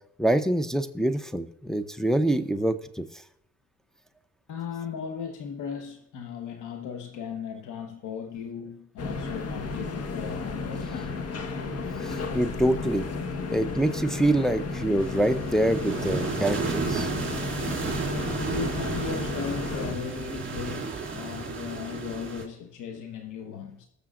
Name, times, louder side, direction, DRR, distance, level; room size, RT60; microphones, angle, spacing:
voice 1, 0.2-3.0 12.0-13.1 13.5-17.1, right 1 dB, ahead, 0.7 m, -25 dB
voice 2, 4.5-11.2 18.1-23.9, left 6 dB, 85° left, 1.2 m, -37 dB
sound 1, 9.0-19.9, left 4 dB, 55° left, 1.3 m, -33 dB
sound 2, 15.0-22.5, right 5 dB, 40° right, 2.6 m, -33 dB
19.5 x 6.8 x 2.5 m
cardioid pair, 90°, 30 cm